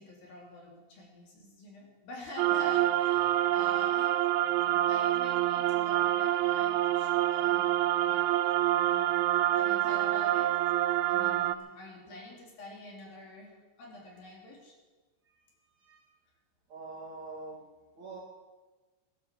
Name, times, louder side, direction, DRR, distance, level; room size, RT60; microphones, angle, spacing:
voice 1, 0.0-4.2 4.6-7.7 8.0-8.2 8.7-13.5 13.8-14.7, left 2 dB, 55° left, -1 dB, 4.4 m, -47 dB
sound 1, 2.4-11.6, right 13 dB, 80° right, 2.8 m, -27 dB
voice 2, 15.2-16.1 16.7-17.6 17.9-18.2, right 3 dB, 40° right, -4 dB, 3.2 m, -46 dB
17.0 x 11.5 x 7.4 m, 1.2 s
omnidirectional pair, 5.5 m